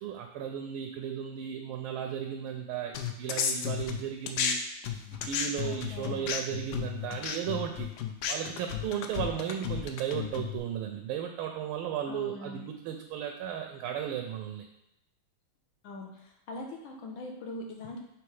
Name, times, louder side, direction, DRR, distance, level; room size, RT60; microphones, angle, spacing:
voice 1, 0.0-4.6 5.1-7.9 8.3-14.7, right 9 dB, 80° right, 4 dB, 1.4 m, -35 dB
sound 1, 2.9-4.6 4.8-10.6, left 8 dB, 85° left, 0.9 m, -33 dB
voice 2, 5.6-6.3 12.1-12.7 15.8-18.0, left 2 dB, 70° left, 1 dB, 1.6 m, -42 dB
6.1 x 3.3 x 4.7 m, 0.83 s
omnidirectional pair, 2.4 m